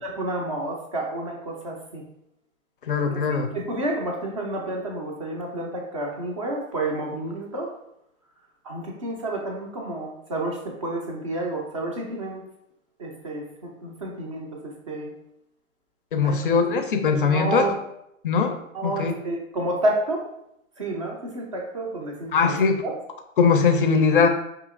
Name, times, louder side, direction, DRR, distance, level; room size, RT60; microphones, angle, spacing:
voice 1, 0.0-2.0 3.1-7.7 8.6-12.4 13.0-15.1 16.2-16.4 16.7-16.8 17.2-17.8 18.7-20.3 20.8-22.6 22.8-22.9, right 2 dB, 25° right, 0 dB, 0.4 m, -30 dB
voice 2, 2.9-3.5 16.1-17.7 18.2-18.6 18.8-19.1 22.3-22.8 23.4-24.3, left 5 dB, 40° left, 6 dB, 0.4 m, -20 dB
4.8 x 2.8 x 2.4 m, 0.79 s
hypercardioid pair, 130°, 42 cm